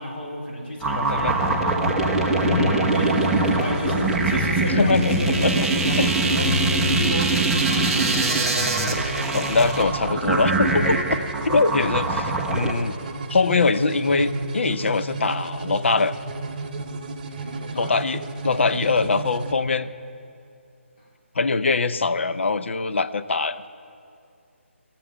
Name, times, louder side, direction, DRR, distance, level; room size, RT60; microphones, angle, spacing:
voice 1, 0.0-2.6 2.9-8.1 8.5-8.6 17.2-18.0 21.0-21.1, equal, 45° left, -4 dB, 3.4 m, -33 dB
sound 1, 0.8-12.7, right 2 dB, ahead, 0.6 m, -22 dB
voice 2, 1.0-1.3 2.5-2.9 4.6-6.1 8.9-9.0 9.3-11.0 11.4-12.9 13.3-16.1 17.7-19.9 21.3-23.7, left 4 dB, 65° left, 12 dB, 0.6 m, -23 dB
sound 2, 2.9-19.5, right 3 dB, 35° right, 0.8 m, -33 dB
16.5 x 7.7 x 9.1 m, 2.4 s
hypercardioid pair, 165°, 7 cm